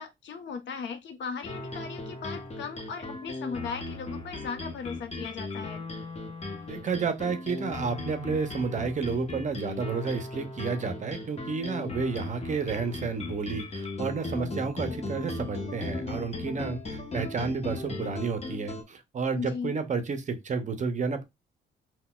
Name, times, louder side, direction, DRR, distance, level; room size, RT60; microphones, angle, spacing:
voice 1, 0.0-5.8 19.3-19.7, left 6 dB, 65° left, 0.7 m, -37 dB
sound 1, 1.4-18.8, left 2 dB, 30° left, 0.8 m, -37 dB
voice 2, 6.7-21.2, right 5 dB, 40° right, 0.5 m, -31 dB
3.8 x 2.2 x 2.2 m
cardioid pair, 90°, 20 cm